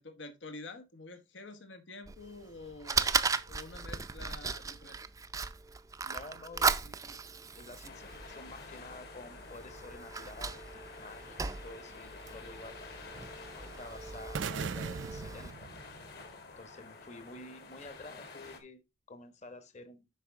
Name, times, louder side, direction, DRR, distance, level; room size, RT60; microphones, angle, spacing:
voice 1, 0.0-3.1 3.5-5.0, left 3 dB, 80° left, 1.2 m, -48 dB
Fire, 2.1-15.5, right 5 dB, 20° right, 0.4 m, -37 dB
voice 2, 6.0-7.2 7.6-10.6 11.0-11.4 11.6-12.8 13.2-15.7 16.6-20.1, left 2 dB, 40° left, 1.2 m, -50 dB
sound 1, 7.8-18.6, left 3 dB, 55° left, 1.9 m, -50 dB
sound 2, 14.3-16.4, right 5 dB, 90° right, 0.5 m, -39 dB
8.1 x 5.8 x 3.5 m
head